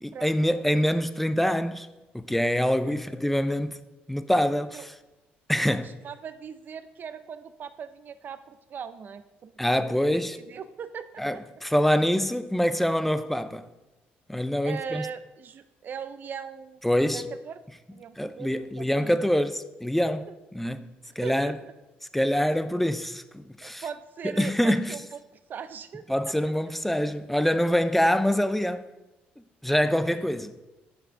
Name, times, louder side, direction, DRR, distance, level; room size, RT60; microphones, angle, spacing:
voice 1, 0.0-1.9 2.1-3.8 4.1-4.9 5.5-5.9 9.6-10.4 11.2-13.7 14.3-15.1 16.8-17.3 18.2-20.9 21.2-21.6 22.1-23.8 24.2-25.0 26.1-28.9 29.6-30.5, equal, 5° left, 0.5 m, -25 dB
voice 2, 5.6-10.2 10.5-11.4 14.6-16.8 17.1-17.6 17.9-19.2 21.2-21.6 23.6-25.2 25.5-26.0, right 7 dB, 50° right, 0.5 m, -39 dB
8.8 x 5.7 x 3.7 m
supercardioid pair, 85°, 4 cm